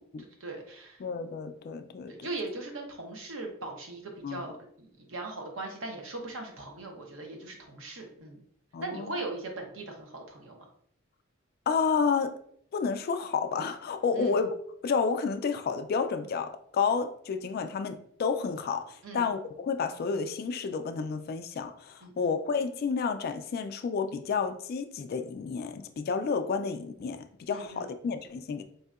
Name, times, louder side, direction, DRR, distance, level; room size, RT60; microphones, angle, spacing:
voice 1, 0.0-1.0 2.1-8.4 8.8-10.6 14.1-14.3 19.0-19.3 22.0-22.3 27.5-27.9, right 2 dB, 70° right, 0.8 m, -39 dB
voice 2, 1.0-2.3 4.2-4.4 8.7-9.1 11.7-12.4 12.7-14.5 14.8-28.6, left 5 dB, 50° left, 0.3 m, -30 dB
4.2 x 2.7 x 2.4 m
head